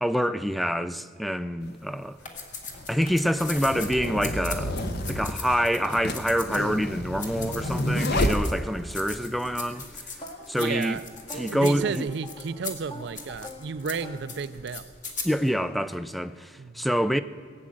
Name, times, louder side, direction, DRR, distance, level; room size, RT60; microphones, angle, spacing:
voice 1, 0.0-2.2 2.9-4.8 5.1-9.9 10.5-11.0 11.4-12.1 15.2-17.2, equal, ahead, 0.4 m, -26 dB
sound 1, 1.6-1.7 2.6-9.1, left 1 dB, 60° left, 1.2 m, -29 dB
sound 2, 2.2-6.9 7.2-8.7 8.9-15.5, left 4 dB, 45° left, 1.9 m, -40 dB
sound 3, 10.2-14.8, left 2 dB, 25° left, 1.3 m, -45 dB
voice 2, 10.5-11.0 11.3-14.9 16.6-16.9, right 5 dB, 65° right, 0.5 m, -32 dB
17.5 x 8.6 x 7.7 m
head